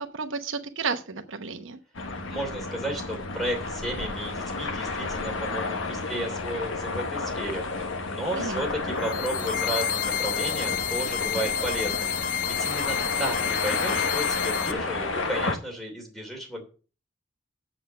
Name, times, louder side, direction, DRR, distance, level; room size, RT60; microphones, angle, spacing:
voice 1, 0.0-1.8 8.3-8.6, right 4 dB, 75° right, 7 dB, 1.0 m, -32 dB
sound 1, 1.9-15.6, left 3 dB, 75° left, 1.3 m, -31 dB
voice 2, 2.3-16.6, right 1 dB, ahead, 1 dB, 2.8 m, -33 dB
sound 2, 9.0-14.7, left 9 dB, 40° left, 0.5 m, -30 dB
7.8 x 7.1 x 6.7 m, 0.37 s
head